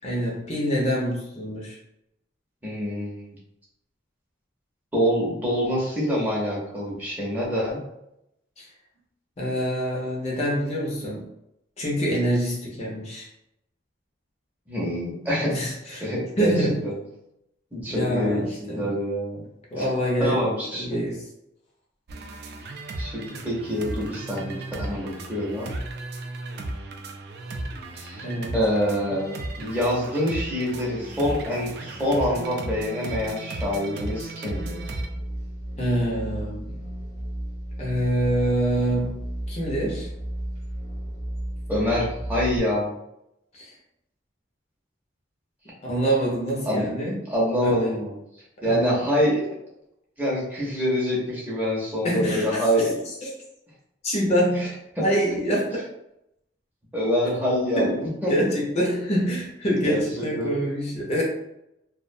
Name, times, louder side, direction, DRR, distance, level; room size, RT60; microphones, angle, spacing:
voice 1, 0.0-1.8 8.6-8.7 9.4-11.3 11.8-13.3 15.5-16.0 16.4-16.9 17.9-18.9 19.7-20.4 20.7-21.2 28.2-28.6 35.8-36.8 37.8-40.1 43.5-43.7 45.8-47.2 47.6-47.9 48.6-49.1 52.0-52.6 53.2-53.3 54.0-54.7 55.0-55.7 57.2-57.3 57.8-61.2, equal, 35° left, -3 dB, 0.5 m, -26 dB
voice 2, 2.6-3.3 4.9-7.8 14.7-15.6 16.0-16.9 17.7-19.4 19.8-19.9 20.2-21.0 23.0-25.7 27.9-28.3 28.5-34.8 41.7-42.9 46.7-46.9 47.3-48.1 48.6-49.4 50.2-52.9 55.0-55.1 56.9-57.9 58.2-58.3 59.8-60.5, equal, 10° right, -7 dB, 0.6 m, -26 dB
sound 1, 22.1-35.1, right 2 dB, 55° right, 0.3 m, -35 dB
sound 2, 34.5-42.6, right 1 dB, 35° right, 0.9 m, -34 dB
2.3 x 2.1 x 2.5 m, 0.82 s
head